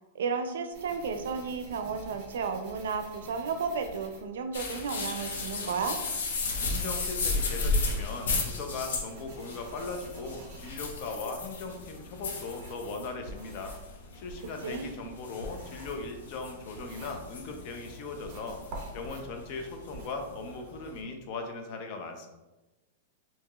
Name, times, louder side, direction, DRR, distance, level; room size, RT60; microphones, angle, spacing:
voice 1, 0.1-6.0 14.6-14.9, right 5 dB, 85° right, 7 dB, 0.4 m, -33 dB
sound 1, 0.7-4.7 5.2-12.9 13.2-17.7 18.2-20.2, right 1 dB, 35° right, 0.8 m, -48 dB
sound 2, 4.5-21.0, left 3 dB, 80° left, 0.8 m, -35 dB
voice 2, 6.7-18.6 18.9-22.3, left 3 dB, 40° left, 4 dB, 0.5 m, -39 dB
4.7 x 2.8 x 2.3 m, 1.1 s
supercardioid pair, 165°, 0 cm